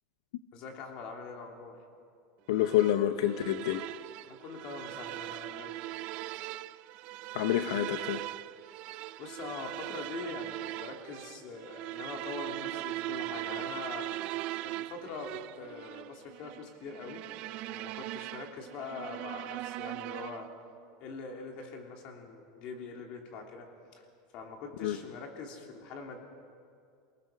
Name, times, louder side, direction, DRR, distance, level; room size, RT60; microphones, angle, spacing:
voice 1, 0.5-1.8 4.2-6.0 9.2-14.1 14.6-17.2 17.7-20.5 21.0-23.7 24.0-24.1 24.3-26.2, left 4 dB, 45° left, 2 dB, 3.1 m, -43 dB
voice 2, 2.5-3.9 7.3-8.2 24.8-25.0, left 12 dB, 85° left, 9 dB, 0.7 m, -28 dB
sound 1, 2.6-20.6, right 17 dB, 45° right, 0.4 m, -40 dB
28.0 x 18.5 x 5.3 m, 2.3 s
supercardioid pair, 155°, 2 cm